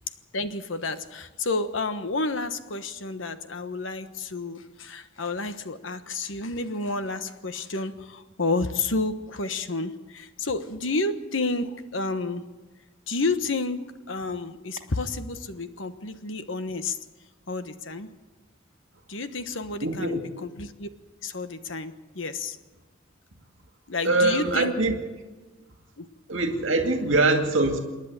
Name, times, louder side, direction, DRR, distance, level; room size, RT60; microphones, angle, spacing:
voice 1, 0.3-12.4 13.1-13.8 14.1-17.0 17.5-18.1 19.1-20.2 20.6-20.9 21.2-22.6 23.9-24.7 26.0-26.1, left 3 dB, 75° left, 10 dB, 1.3 m, -30 dB
voice 2, 19.8-20.3 24.0-25.0 26.3-27.8, right 2 dB, 75° right, 5 dB, 2.2 m, -23 dB
27.5 x 10.5 x 9.0 m, 1.2 s
head